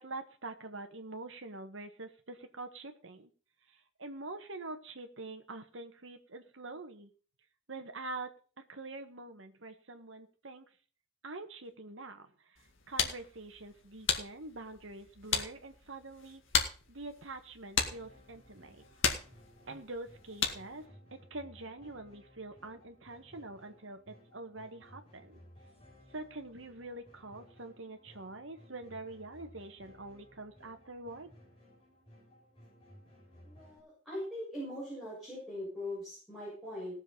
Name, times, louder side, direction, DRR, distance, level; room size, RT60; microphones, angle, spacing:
voice 1, 0.0-3.3 3.7-7.1 7.7-8.3 8.7-10.7 11.2-16.4 16.9-18.8 19.7-20.9 21.3-25.4 26.1-31.3, right 2 dB, 75° right, 7 dB, 1.6 m, -45 dB
sound 1, 12.6-20.8, left 7 dB, 80° left, 2.0 m, -36 dB
sound 2, 17.8-33.8, equal, 25° left, 6.7 m, -59 dB
voice 2, 33.4-36.9, left 1 dB, ahead, -8 dB, 7.4 m, -41 dB
18.5 x 7.2 x 5.6 m, 0.40 s
head